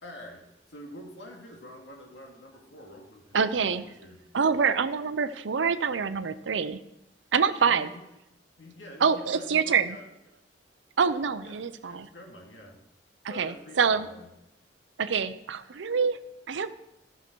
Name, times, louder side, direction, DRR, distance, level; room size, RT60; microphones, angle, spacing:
voice 1, 0.0-4.2 7.6-8.0 8.6-10.1 11.4-12.8 13.3-14.3, left 1 dB, 85° left, 1 dB, 2.1 m, -47 dB
voice 2, 3.3-3.8 4.3-6.8 7.3-7.9 9.0-9.9 11.0-12.1 13.3-14.1 15.0-16.2 16.5-16.7, right 6 dB, 85° right, 13 dB, 0.6 m, -26 dB
14.5 x 5.7 x 4.5 m, 0.88 s
head